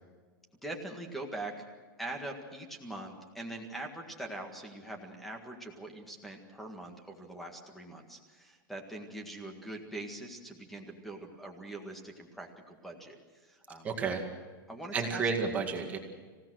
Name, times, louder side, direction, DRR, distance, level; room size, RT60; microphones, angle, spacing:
voice 1, 0.6-1.6 2.0-13.9 14.7-15.5, right 2 dB, ahead, 3 dB, 1.8 m, -43 dB
voice 2, 13.8-14.2 14.9-16.0, right 5 dB, 15° right, 3 dB, 2.1 m, -31 dB
26.5 x 17.0 x 6.3 m, 1.4 s
supercardioid pair, 180°, 11 cm